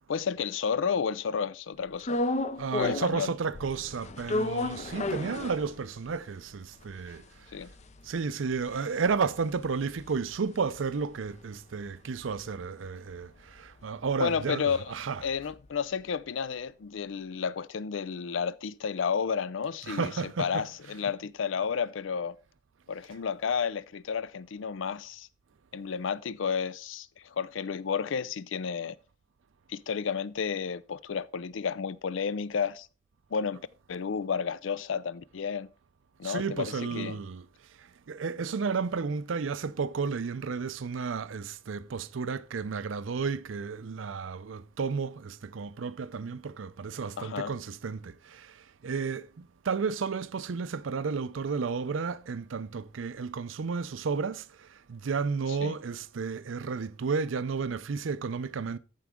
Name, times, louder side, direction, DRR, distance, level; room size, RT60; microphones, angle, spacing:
voice 1, 0.1-2.2 2.8-3.3 7.5-7.7 14.2-14.9 15.2-20.1 20.4-22.3 22.9-25.3 25.7-29.0 29.7-32.9 33.3-33.6 33.9-35.7 36.2-37.2 47.2-47.5 55.6-55.7, left 6 dB, 85° left, 0.5 m, -31 dB
sound 1, 2.0-3.2 3.5-6.1 6.5-6.6 6.8-11.3 11.6-15.7, left 2 dB, 35° left, 0.5 m, -35 dB
voice 2, 2.6-7.5 8.0-15.2 19.9-20.7 36.2-37.5 37.8-58.8, right 5 dB, 85° right, 0.5 m, -32 dB
14.0 x 4.7 x 3.6 m
head